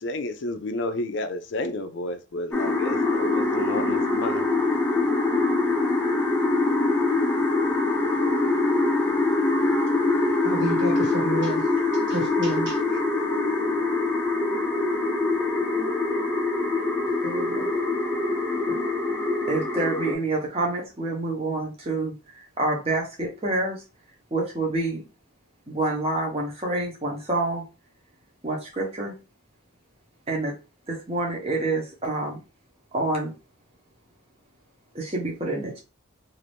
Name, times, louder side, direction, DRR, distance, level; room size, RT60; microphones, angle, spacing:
voice 1, 0.0-4.5, left 2 dB, 65° left, 0.4 m, -31 dB
sound 1, 2.5-20.1, left 2 dB, 10° left, 0.5 m, -24 dB
voice 2, 10.4-11.7 12.1-13.0, right 2 dB, 70° right, 1.5 m, -30 dB
voice 3, 17.2-17.7 18.7-18.8 19.5-23.8 24.3-25.0 25.7-27.6 28.4-29.1 30.3-30.5 30.9-32.4 32.9-33.3 34.9-35.8, right 2 dB, 30° right, 0.9 m, -27 dB
2.6 x 2.5 x 3.4 m
head